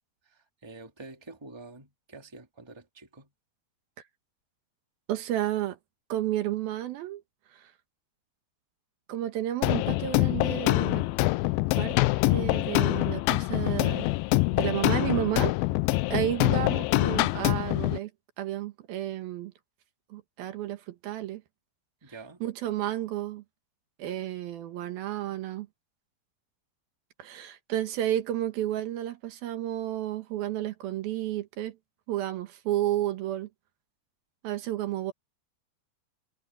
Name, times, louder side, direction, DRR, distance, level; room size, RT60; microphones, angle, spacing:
voice 1, 0.3-3.3 22.0-22.4, right 3 dB, 10° right, 2.2 m, -47 dB
voice 2, 5.1-5.8 6.1-7.2 7.5-7.7 9.1-11.0 11.8-12.0 12.3-14.1 14.5-15.6 16.1-18.1 18.4-19.5 20.1-21.4 22.4-23.4 24.0-25.7 27.2-31.8 32.1-33.5 34.4-35.1, right 12 dB, 75° right, 3.1 m, -31 dB
sound 1, 9.6-18.0, left 20 dB, 80° left, 2.3 m, -25 dB
omnidirectional pair, 4.4 m